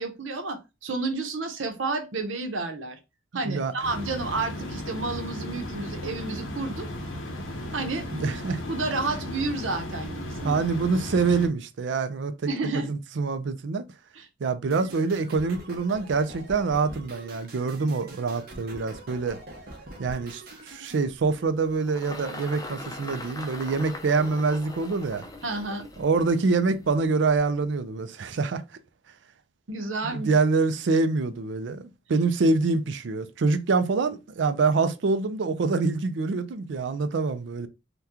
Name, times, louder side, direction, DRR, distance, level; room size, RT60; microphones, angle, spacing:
voice 1, 0.0-3.0 3.3-6.9 7.7-8.1 8.7-10.6 12.5-12.9 14.2-14.3 25.4-25.9 29.7-30.3, right 3 dB, 85° right, 0.8 m, -31 dB
voice 2, 3.4-3.7 8.1-8.6 10.4-13.8 14.4-19.4 20.0-20.4 20.7-25.2 26.0-28.6 30.0-37.7, right 4 dB, 70° right, 0.4 m, -25 dB
sound 1, 3.8-11.5, left 1 dB, 90° left, 0.7 m, -35 dB
sound 2, 14.7-21.1, right 1 dB, 50° right, 0.8 m, -44 dB
Engine, 21.0-27.6, left 2 dB, 20° left, 0.5 m, -42 dB
2.9 x 2.2 x 3.5 m
head